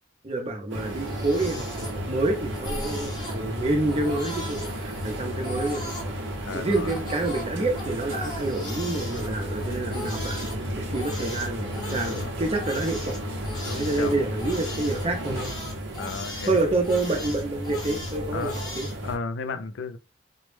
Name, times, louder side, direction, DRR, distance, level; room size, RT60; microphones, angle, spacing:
voice 1, 0.2-5.9 6.5-10.6 10.9-13.2 13.7-15.5 16.5-18.9, right 2 dB, 30° right, 0.5 m, -28 dB
sound 1, 0.7-19.2, equal, 80° right, 0.6 m, -33 dB
Crying sobbing, 0.8-2.3 2.5-3.4 3.9-6.1 6.7-10.5 10.9-19.0, left 1 dB, 25° left, 0.9 m, -39 dB
voice 2, 6.4-6.9 11.7-12.3 13.6-14.3 16.0-16.6 18.3-18.5 19.0-20.0, left 4 dB, 80° left, 0.4 m, -34 dB
2.1 x 2.0 x 3.1 m
head